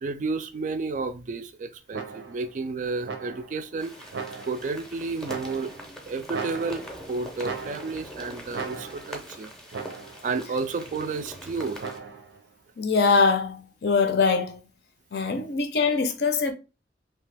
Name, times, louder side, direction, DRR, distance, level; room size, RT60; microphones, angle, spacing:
voice 1, 0.0-3.9 4.5-5.7 6.1-9.5 10.2-11.8, right 4 dB, 45° right, 0.3 m, -31 dB
sound 1, 1.9-2.5 3.0-3.6 4.1-4.8 5.3-5.9 6.3-7.1 7.4-8.1 8.5-9.2 9.7-10.3 11.8-12.4, right 5 dB, 85° right, 0.6 m, -37 dB
sound 2, 3.8-12.0, equal, 5° left, 0.6 m, -43 dB
voice 2, 12.8-14.6 15.1-16.5, left 4 dB, 60° left, 0.5 m, -23 dB
2.8 x 2.3 x 3.2 m
head